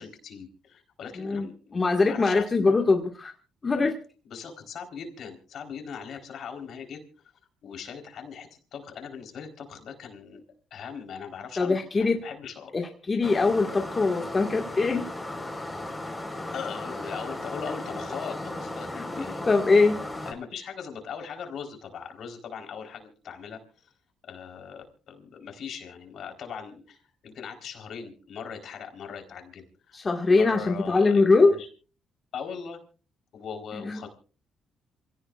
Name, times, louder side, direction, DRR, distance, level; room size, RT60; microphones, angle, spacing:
voice 1, 0.0-1.7 2.1-2.8 4.3-7.3 7.6-10.4 10.7-12.7 16.5-19.5 20.3-23.8 24.2-30.0 30.3-31.7 32.3-32.8 33.3-34.1, left 7 dB, 70° left, 4 dB, 4.1 m, -40 dB
voice 2, 1.7-3.3 3.6-3.9 11.6-12.2 12.7-15.0 18.9-20.0 29.9-31.6 33.7-34.0, left 3 dB, 30° left, 2 dB, 1.9 m, -22 dB
sound 1, 13.2-20.3, left 1 dB, 15° left, 4.6 m, -36 dB
27.5 x 17.0 x 2.5 m, 0.38 s
cardioid pair, 90°, 0 cm